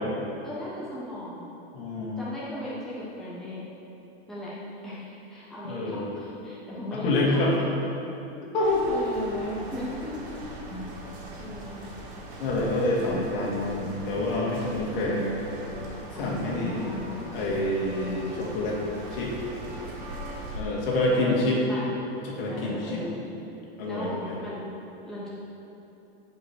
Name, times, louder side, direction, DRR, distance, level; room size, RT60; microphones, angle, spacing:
voice 1, 0.4-1.5 2.2-3.6 4.3-4.5 4.8-7.4 8.6-10.4 11.4-11.9 16.1-17.3 20.9-21.9 22.5-23.2 23.9-24.6 25.1-25.3, left 1 dB, ahead, -9 dB, 1.3 m, -37 dB
voice 2, 1.7-2.2 5.6-6.0 6.9-7.6 8.5-8.9 10.7-11.0 12.4-15.4 16.2-16.8 17.3-18.8 19.1-19.3 20.5-21.6 22.2-23.0 23.8-24.3, left 2 dB, 60° left, -4 dB, 2.6 m, -27 dB
sound 1, 8.6-20.6, right 1 dB, 55° right, 2.5 m, -41 dB
15.5 x 5.4 x 4.8 m, 3.0 s
supercardioid pair, 165°, 31 cm